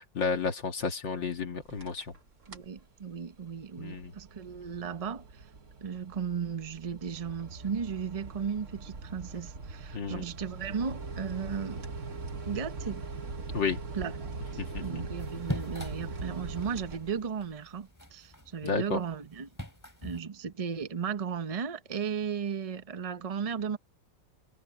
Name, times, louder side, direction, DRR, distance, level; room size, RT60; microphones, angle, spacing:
voice 1, 0.0-2.1 3.8-4.1 9.9-10.3 13.5-13.8 14.6-15.0 18.6-19.0, left 5 dB, 70° left, 2.5 m, -32 dB
sound 1, 1.6-2.2 2.4-2.8 3.2-17.5, right 3 dB, 40° right, 1.8 m, -41 dB
voice 2, 2.5-5.5 5.8-11.8 12.5-13.0 13.9-19.5 20.0-23.8, right 6 dB, 65° right, 0.3 m, -35 dB
sound 2, 15.2-20.2, equal, 10° left, 3.2 m, -43 dB
omnidirectional pair, 2.1 m